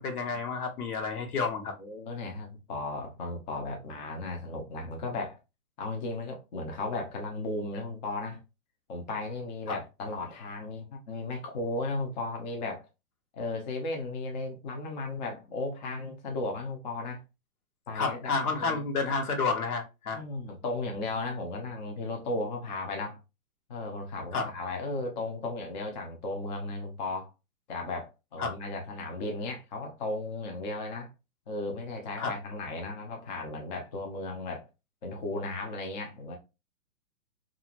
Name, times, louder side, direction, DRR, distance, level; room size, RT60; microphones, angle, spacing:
voice 1, 0.0-1.7 9.7-9.8 17.9-20.2 24.3-24.5 28.4-28.5 32.2-32.3, left 4 dB, 85° left, 1.1 m, -30 dB
voice 2, 1.8-5.4 5.8-8.4 8.9-12.9 13.3-17.2 17.9-18.8 20.1-23.2 23.7-27.3 27.7-31.1 31.5-34.7 35.0-36.4, left 2 dB, 30° left, 0.6 m, -35 dB
2.7 x 2.5 x 2.8 m
hypercardioid pair, 155°, 44 cm